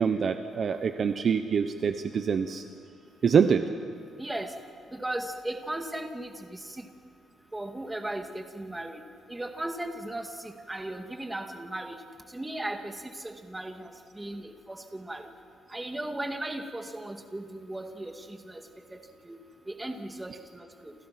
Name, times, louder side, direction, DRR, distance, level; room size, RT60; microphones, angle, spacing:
voice 1, 0.0-2.6 3.2-3.6, right 6 dB, 40° right, 8 dB, 0.9 m, -25 dB
voice 2, 4.2-4.5 4.9-6.9 7.5-9.0 9.3-12.0 12.3-15.3 15.7-18.6 18.9-19.0 19.2-19.4 19.7-20.9, right 1 dB, 10° right, 4 dB, 2.1 m, -37 dB
29.5 x 28.5 x 6.0 m, 2.2 s
cardioid pair, 155°, 0 cm